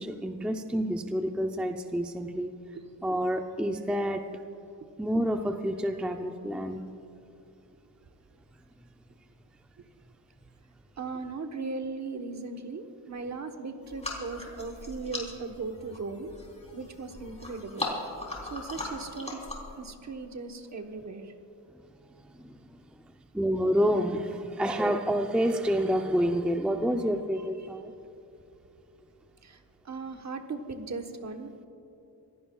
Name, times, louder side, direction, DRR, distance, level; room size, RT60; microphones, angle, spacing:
voice 1, 0.0-2.5 3.0-4.2 5.0-6.8 22.5-22.6 23.3-27.9, equal, 5° right, 5 dB, 0.5 m, -28 dB
voice 2, 11.0-16.3 16.7-17.9 18.5-19.4 19.8-21.3 29.4-29.6 29.8-31.6, right 4 dB, 40° right, 5 dB, 1.2 m, -38 dB
sound 1, 13.8-19.8, left 2 dB, 15° left, 3.5 m, -39 dB
25.5 x 16.5 x 2.3 m, 2.9 s
wide cardioid pair, 145°, 42 cm